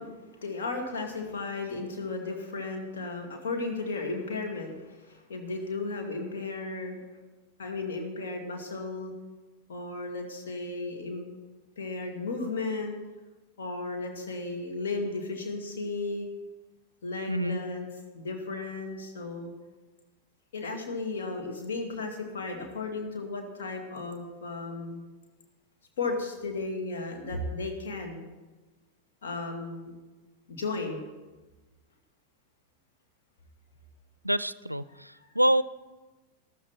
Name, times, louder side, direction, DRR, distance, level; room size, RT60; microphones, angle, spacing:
voice 1, 0.0-7.0 7.6-9.1 9.7-11.3 11.8-12.9 13.6-16.3 17.0-17.9 18.1-19.5 20.5-25.0 26.0-28.3 29.2-29.9 30.5-31.0, left 3 dB, 60° left, 2 dB, 2.7 m, -34 dB
voice 2, 17.3-17.6 34.2-35.6, right 1 dB, 90° right, 17 dB, 0.4 m, -26 dB
13.5 x 13.5 x 4.5 m, 1.2 s
figure-of-eight pair, 90°, 0 cm